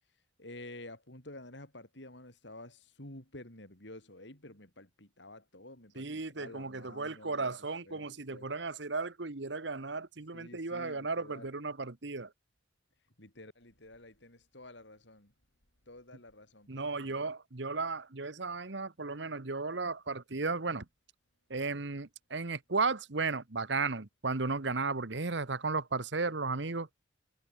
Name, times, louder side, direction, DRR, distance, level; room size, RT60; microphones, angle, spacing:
voice 1, 0.0-8.5 10.3-11.6 13.2-15.3 15.9-17.3, left 1 dB, 65° left, 5.9 m, -51 dB
voice 2, 6.0-12.3 16.7-20.8 21.5-26.9, right 3 dB, 65° right, 1.3 m, -35 dB
head